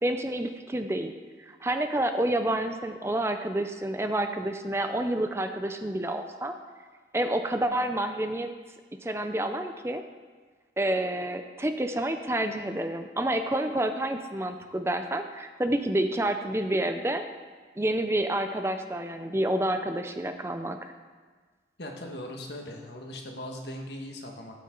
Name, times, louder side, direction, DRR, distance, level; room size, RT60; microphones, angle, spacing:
voice 1, 0.0-1.1 1.4-6.5 7.1-8.5 9.0-10.0 10.8-17.2 17.8-20.8, right 1 dB, 15° right, 7 dB, 0.5 m, -29 dB
voice 2, 21.8-24.5, left 1 dB, 75° left, 2 dB, 1.5 m, -39 dB
13.0 x 8.5 x 3.8 m, 1.5 s
head